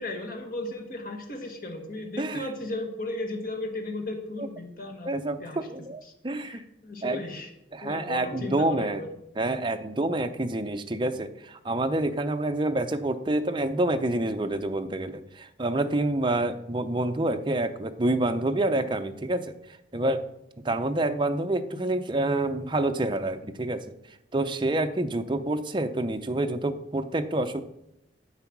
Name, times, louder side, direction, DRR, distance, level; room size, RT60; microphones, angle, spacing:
voice 1, 0.0-5.1 5.4-5.6 6.4-7.5 7.8-9.1, left 2 dB, 50° left, 3 dB, 1.5 m, -35 dB
voice 2, 2.2-2.5 4.4-4.5 5.0-6.6 7.0-7.2 7.7-9.0 9.4-20.2 20.6-23.9 24.3-27.6, right 2 dB, 25° right, 8 dB, 0.6 m, -27 dB
9.7 x 7.9 x 6.0 m, 0.85 s
head